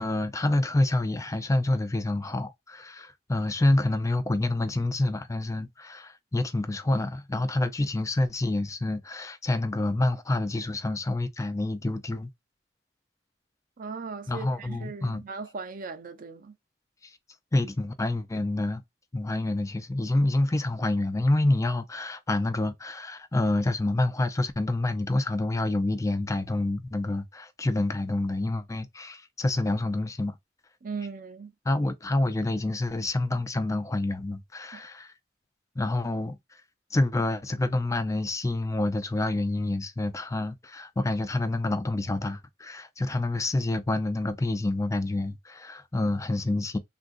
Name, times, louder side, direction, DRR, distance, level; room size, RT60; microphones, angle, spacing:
voice 1, 0.0-12.3 14.3-15.2 17.0-17.1 17.5-18.8 19.1-30.4 31.7-35.1 35.8-36.4 36.9-46.8, left 2 dB, 15° left, 0.4 m, -27 dB
voice 2, 13.8-16.5 30.8-31.5 34.7-34.8, right 4 dB, 50° right, 0.5 m, -38 dB
3.5 x 2.5 x 2.4 m
head